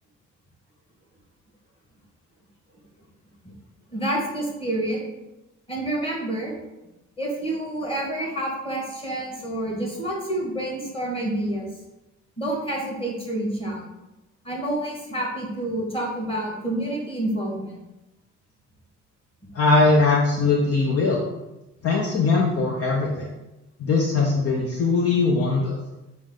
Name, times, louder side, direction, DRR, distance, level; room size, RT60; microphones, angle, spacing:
voice 1, 3.9-5.0 5.7-6.5 7.2-11.7 12.4-13.8 14.4-17.8, right 1 dB, 20° left, -3 dB, 1.6 m, -28 dB
voice 2, 19.5-21.2 21.8-23.3 23.8-25.8, left 3 dB, 50° left, -1 dB, 0.7 m, -20 dB
6.1 x 2.1 x 3.7 m, 0.98 s
cardioid pair, 90°, 30 cm